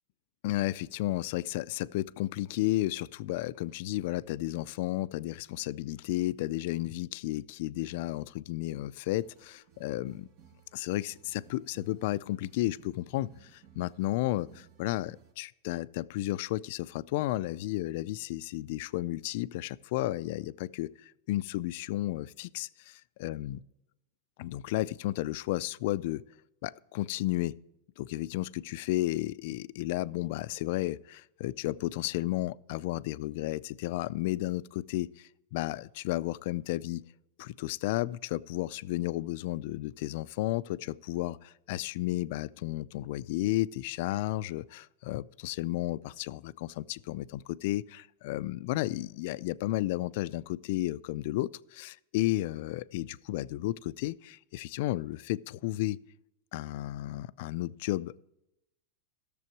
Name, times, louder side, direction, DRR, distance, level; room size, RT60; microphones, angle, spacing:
voice 1, 0.4-10.3 10.7-23.6 24.4-26.2 26.6-27.5 28.0-37.0 37.4-56.0 56.5-58.1, left 16 dB, 60° left, 0.4 m, -33 dB
sound 1, 9.2-15.3, right 8 dB, 50° right, 1.2 m, -59 dB
14.0 x 6.9 x 4.6 m
supercardioid pair, 130°, 0 cm